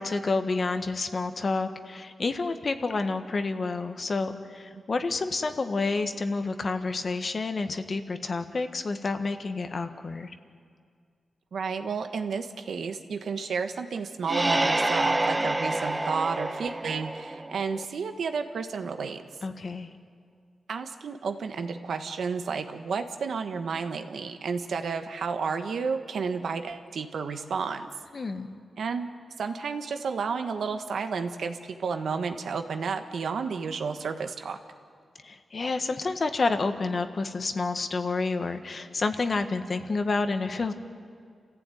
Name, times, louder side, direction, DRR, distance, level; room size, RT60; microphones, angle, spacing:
voice 1, 0.0-10.3 19.4-19.9 28.1-28.5 35.2-40.7, left 3 dB, 50° left, 8 dB, 1.6 m, -29 dB
voice 2, 11.5-19.2 20.7-27.9 28.8-29.1 29.4-34.6, right 5 dB, 80° right, 7 dB, 1.5 m, -31 dB
sound 1, 14.2-17.8, right 2 dB, 20° right, 0.8 m, -28 dB
28.0 x 15.0 x 9.4 m, 2.1 s
cardioid pair, 80°, 0 cm